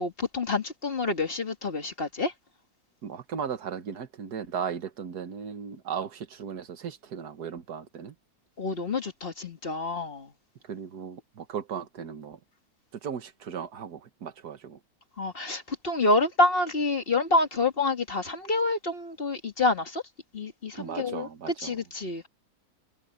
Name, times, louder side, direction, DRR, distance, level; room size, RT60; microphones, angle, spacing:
voice 1, 0.0-2.3 8.6-10.3 15.2-20.0 20.3-21.3 21.6-22.3, left 2 dB, 35° left, 2.1 m, -27 dB
voice 2, 3.0-8.2 10.6-12.4 12.9-14.8 20.8-21.8, right 7 dB, 85° right, 1.9 m, -36 dB
omnidirectional pair, 1.6 m